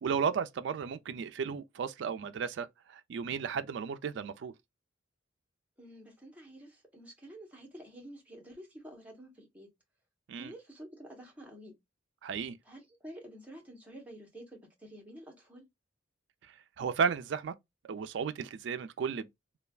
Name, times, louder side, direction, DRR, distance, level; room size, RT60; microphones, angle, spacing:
voice 1, 0.0-4.5 10.3-10.5 12.2-12.6 16.8-17.5 17.9-19.3, right 6 dB, 70° right, 0.3 m, -34 dB
voice 2, 5.8-9.7 10.3-11.7 12.6-15.6, right 1 dB, 10° right, 1.0 m, -49 dB
3.2 x 2.3 x 2.3 m
head